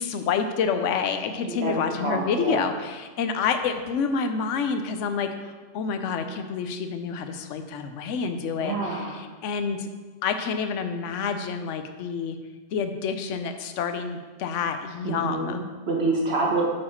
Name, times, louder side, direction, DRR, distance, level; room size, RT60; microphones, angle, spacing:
voice 1, 0.0-5.3 5.7-9.9 10.2-12.4 12.7-15.6, left 6 dB, 80° left, 7 dB, 1.0 m, -28 dB
voice 2, 1.5-2.6 8.6-9.2 15.0-16.6, right 2 dB, 55° right, -1 dB, 1.5 m, -27 dB
8.3 x 4.8 x 4.4 m, 1.3 s
omnidirectional pair, 1.3 m